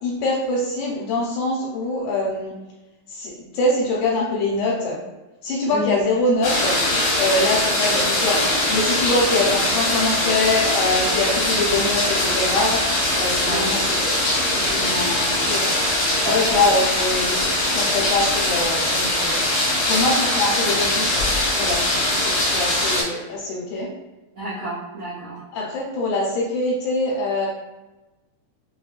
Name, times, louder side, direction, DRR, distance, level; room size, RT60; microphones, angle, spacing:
voice 1, 0.0-2.5 3.1-5.0 5.4-6.8 7.2-12.8 13.1-15.7 16.2-19.4 19.9-23.9 25.5-27.5, left 2 dB, 80° left, -5 dB, 2.0 m, -24 dB
sound 1, 6.4-23.0, left 1 dB, 55° left, 1.1 m, -21 dB
voice 2, 13.5-13.8 16.2-16.6 24.4-25.4, right 1 dB, 70° right, -11 dB, 1.2 m, -29 dB
5.6 x 2.1 x 2.4 m, 1.1 s
omnidirectional pair, 3.4 m